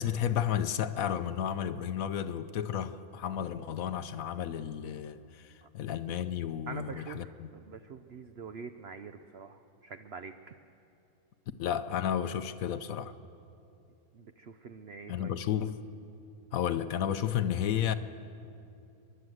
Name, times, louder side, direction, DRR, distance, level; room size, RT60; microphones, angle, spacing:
voice 1, 0.0-7.5 11.6-13.1 15.1-15.8 16.5-17.9, left 9 dB, 65° left, 11 dB, 0.9 m, -32 dB
voice 2, 6.7-10.5 14.1-15.3, right 5 dB, 70° right, 8 dB, 0.6 m, -45 dB
29.5 x 11.5 x 7.8 m, 2.7 s
omnidirectional pair, 1.9 m